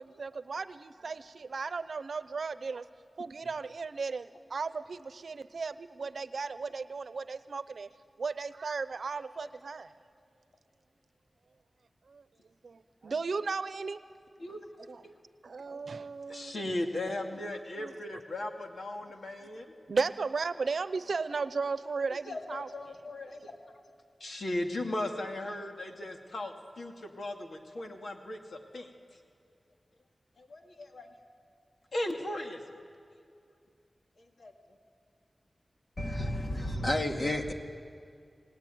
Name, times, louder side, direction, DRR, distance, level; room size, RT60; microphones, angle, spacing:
voice 1, 0.0-2.9 3.2-7.9 8.2-9.9 12.1-12.2 12.6-14.0 14.9-15.0 15.4-16.7 17.8-17.9 19.9-22.7, right 4 dB, 80° right, 13 dB, 0.8 m, -35 dB
voice 2, 16.3-19.7 22.3-23.6 24.2-28.9 30.4-31.1 31.9-32.6 34.2-34.5, left 1 dB, 75° left, 3 dB, 2.4 m, -37 dB
voice 3, 36.0-37.5, left 1 dB, 40° left, 3 dB, 2.4 m, -31 dB
29.5 x 19.5 x 9.3 m, 2.3 s
wide cardioid pair, 90°, 0 cm